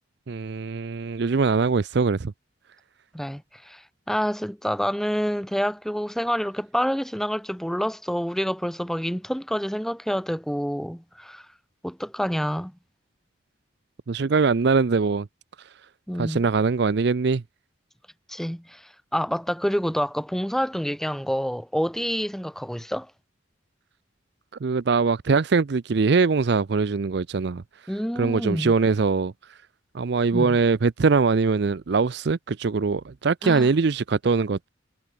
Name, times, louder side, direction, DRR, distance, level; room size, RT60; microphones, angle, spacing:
voice 1, 0.3-2.3 14.1-15.3 16.2-17.4 24.6-27.6 28.2-29.3 29.9-34.7, right 4 dB, 55° right, 0.5 m, -22 dB
voice 2, 3.1-3.8 4.1-11.4 11.8-12.7 16.1-16.4 18.3-18.8 19.1-23.1 27.9-28.7 30.3-30.6 33.4-33.7, equal, ahead, 1.4 m, -27 dB
head